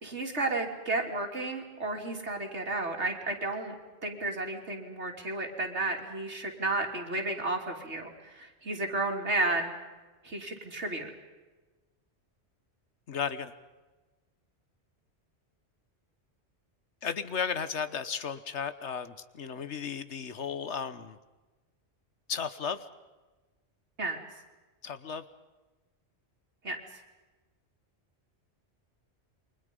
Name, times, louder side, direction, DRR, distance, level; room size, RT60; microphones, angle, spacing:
voice 1, 0.0-3.7 4.0-9.7 10.2-11.1 24.0-24.2 26.6-26.8, right 2 dB, 80° right, 2 dB, 3.5 m, -32 dB
voice 2, 13.1-13.5 17.0-21.2 22.3-22.8 24.8-25.2, left 6 dB, 85° left, 12 dB, 1.5 m, -34 dB
29.0 x 23.5 x 5.4 m, 1.2 s
omnidirectional pair, 1.2 m